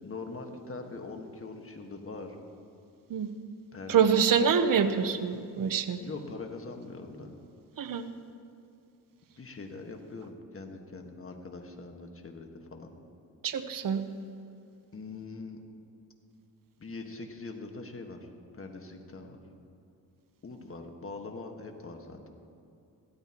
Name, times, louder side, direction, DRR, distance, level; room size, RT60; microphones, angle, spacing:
voice 1, 0.0-2.4 3.7-4.2 6.0-7.4 9.4-12.9 14.9-15.6 16.8-18.3 18.5-19.4 20.4-22.3, left 3 dB, 35° left, 4 dB, 1.6 m, -42 dB
voice 2, 3.9-6.0 7.8-8.1 13.4-14.0, right 7 dB, 60° right, 10 dB, 0.9 m, -25 dB
16.0 x 13.0 x 3.0 m, 2.6 s
cardioid pair, 75°, 38 cm